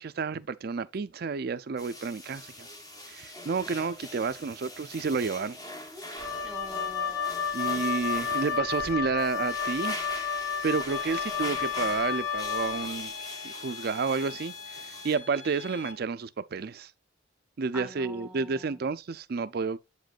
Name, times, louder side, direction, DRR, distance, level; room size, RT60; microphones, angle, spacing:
voice 1, 0.0-2.7 3.1-5.6 7.5-10.0 10.3-16.9 17.6-19.8, right 4 dB, 55° right, 0.4 m, -31 dB
sound 1, 1.8-15.2, left 1 dB, 20° left, 1.2 m, -42 dB
voice 2, 5.9-7.3 7.7-7.8 17.7-18.8, equal, 5° right, 1.3 m, -45 dB
Wind instrument woodwind instrument, 6.2-12.9, left 7 dB, 85° left, 3.3 m, -31 dB
sound 2, 10.9-15.9, left 6 dB, 70° left, 1.0 m, -42 dB
8.2 x 5.1 x 2.4 m
head